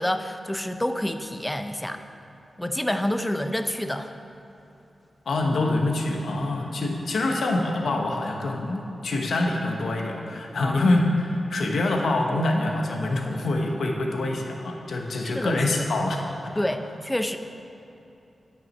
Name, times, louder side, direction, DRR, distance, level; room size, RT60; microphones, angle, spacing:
voice 1, 0.0-2.0 2.6-4.1 10.6-11.0 15.3-15.6 16.6-17.4, left 1 dB, 10° left, 8 dB, 0.4 m, -28 dB
voice 2, 5.3-16.5, left 2 dB, 85° left, 1 dB, 0.9 m, -25 dB
9.2 x 5.8 x 5.3 m, 2.8 s
wide cardioid pair, 105°, 0 cm